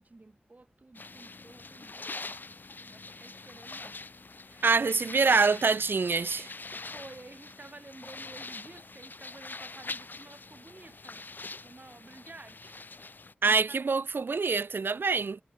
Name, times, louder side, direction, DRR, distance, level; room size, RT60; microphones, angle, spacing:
voice 1, 0.0-2.1 2.9-4.1 4.4-5.0 6.7-11.3 11.6-12.8 13.4-13.9, right 2 dB, 45° right, 2.3 m, -51 dB
sound 1, 0.9-13.3, left 3 dB, 60° left, 2.2 m, -44 dB
voice 2, 4.6-6.5 13.4-15.4, right 4 dB, 75° right, 0.8 m, -25 dB
wide cardioid pair, 50°, 4 cm